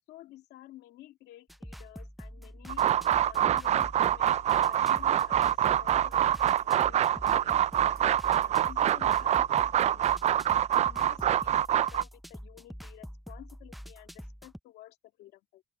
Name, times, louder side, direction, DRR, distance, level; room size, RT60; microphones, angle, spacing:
voice 1, 0.1-2.9 3.2-8.0 8.3-15.6, left 15 dB, 80° left, 2.1 m, -52 dB
sound 1, 1.5-14.6, equal, ahead, 0.6 m, -46 dB
sound 2, 2.7-12.0, right 11 dB, 40° right, 0.4 m, -25 dB
open air
cardioid pair, 110°, 17 cm